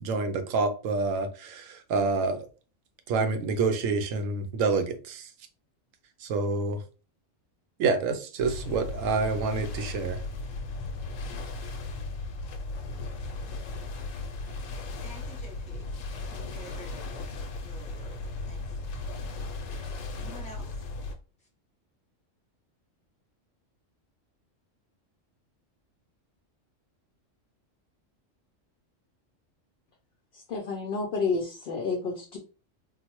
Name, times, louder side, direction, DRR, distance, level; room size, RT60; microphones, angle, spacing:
voice 1, 0.0-2.5 3.1-5.3 6.2-6.8 7.8-10.2, right 4 dB, 85° right, 8 dB, 1.0 m, -27 dB
sound 1, 8.4-21.2, left 3 dB, 80° left, 1.0 m, -36 dB
voice 2, 15.0-18.8 20.2-20.9, equal, 5° left, -3 dB, 1.0 m, -50 dB
voice 3, 30.3-32.4, left 4 dB, 60° left, 2 dB, 0.7 m, -30 dB
3.8 x 2.1 x 2.9 m, 0.36 s
omnidirectional pair, 1.3 m